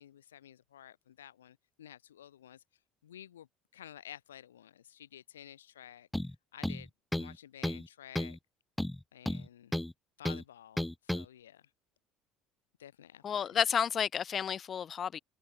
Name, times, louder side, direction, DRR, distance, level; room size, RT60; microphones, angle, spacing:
voice 1, 0.0-2.6 3.0-3.5 3.7-6.1 6.5-6.9 7.2-8.4 9.1-9.7 10.2-11.6 12.8-13.5, left 10 dB, 80° left, 3.8 m, -52 dB
sound 1, 6.1-6.3 6.6-7.4 7.6-7.9 8.2-8.4 8.8-9.9 10.3-10.4 10.8-11.3, left 1 dB, 5° left, 2.0 m, -33 dB
voice 2, 13.2-15.2, left 8 dB, 40° left, 1.2 m, -31 dB
figure-of-eight pair, 60°, 0 cm